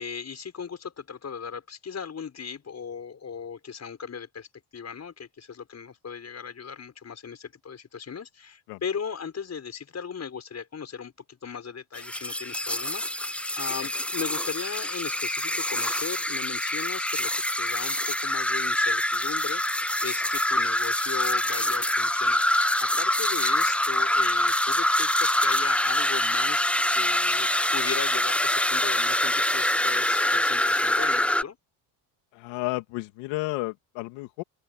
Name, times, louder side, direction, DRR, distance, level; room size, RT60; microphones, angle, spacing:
voice 1, 0.0-4.5 4.7-31.6, left 6 dB, 35° left, 6.1 m, -37 dB
sound 1, 12.0-31.4, left 1 dB, 5° left, 0.6 m, -25 dB
voice 2, 32.3-34.4, left 21 dB, 85° left, 2.9 m, -32 dB
open air
supercardioid pair, 95°, 45 cm